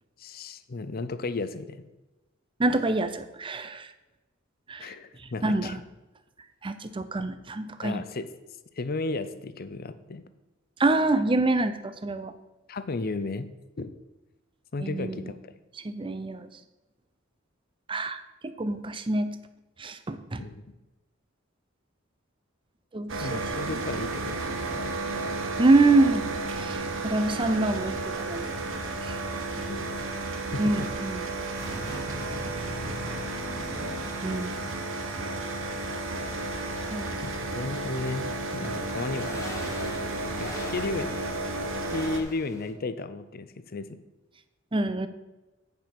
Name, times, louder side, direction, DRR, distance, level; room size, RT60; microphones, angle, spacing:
voice 1, 0.2-1.9 4.8-5.8 7.8-8.3 8.8-10.2 12.7-13.5 13.8-13.9 14.7-15.5 20.4-20.7 23.2-24.9 29.6-30.2 30.5-30.9 37.2-38.2 38.5-39.4 40.4-41.2 41.9-44.0, left 3 dB, 50° left, 12 dB, 0.6 m, -34 dB
voice 2, 2.6-3.9 4.7-4.9 5.4-5.8 6.6-8.0 10.8-12.3 14.8-15.3 15.8-16.5 17.9-18.2 18.6-19.3 19.8-20.4 22.9-23.4 25.6-26.3 26.6-28.6 29.0-29.2 30.6-31.2 34.2-34.5 36.9-37.2 44.7-45.1, right 2 dB, 25° right, 10 dB, 0.6 m, -26 dB
sound 1, 23.1-42.2, right 2 dB, 85° right, 1.1 m, -32 dB
sound 2, 28.9-42.7, left 1 dB, 15° left, 1.3 m, -45 dB
8.9 x 5.4 x 5.9 m, 1.1 s
head